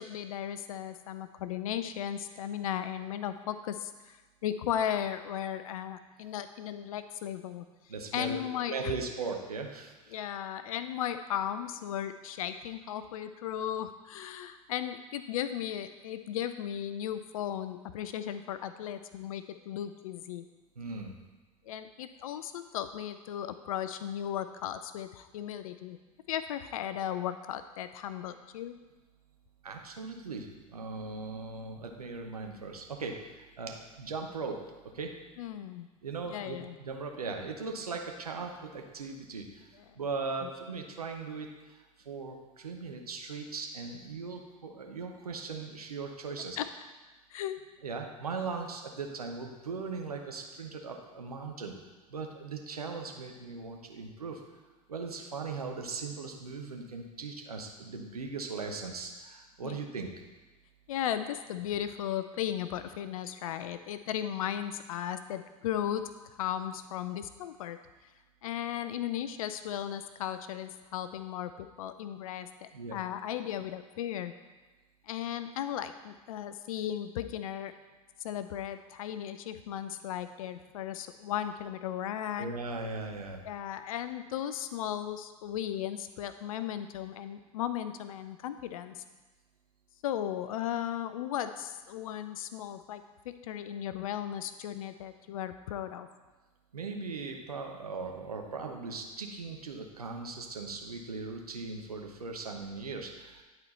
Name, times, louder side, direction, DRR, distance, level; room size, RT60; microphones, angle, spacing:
voice 1, 0.0-7.6 8.1-8.9 10.1-20.4 21.7-26.0 26.3-28.7 35.4-35.9 36.3-36.8 40.4-40.5 46.6-46.7 47.3-47.6 59.6-59.8 60.9-66.1 66.4-67.8 68.4-74.3 75.0-77.7 78.2-82.5 83.4-89.0 90.0-96.1, left 10 dB, 70° left, 11 dB, 0.4 m, -36 dB
voice 2, 7.9-10.3 20.8-21.2 29.6-34.6 34.9-35.2 36.0-46.6 47.8-51.8 52.1-54.4 54.9-60.1 72.7-73.0 82.4-83.4 96.7-103.4, right 4 dB, 85° right, 3 dB, 0.9 m, -39 dB
10.5 x 4.4 x 4.1 m, 1.2 s
figure-of-eight pair, 75°, 19 cm